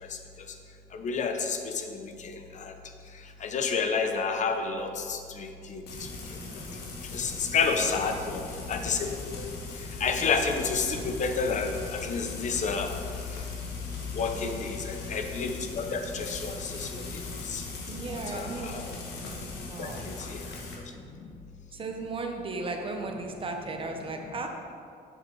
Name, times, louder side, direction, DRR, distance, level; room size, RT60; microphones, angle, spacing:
voice 1, 0.9-2.7 3.4-6.1 7.1-8.4 8.7-9.1 9.4-9.5 10.0-12.9 14.1-17.0 17.5-17.6 18.3-18.9 19.8-20.4, left 5 dB, 45° left, 5 dB, 0.9 m, -30 dB
Frying (food), 5.9-20.8, left 4 dB, 75° left, 1.6 m, -39 dB
voice 2, 7.7-8.3 14.3-14.8 17.9-18.7 19.6-20.1 21.7-24.5, right 3 dB, 30° right, 3 dB, 1.1 m, -36 dB
7.9 x 7.4 x 4.8 m, 2.4 s
cardioid pair, 110°, 17 cm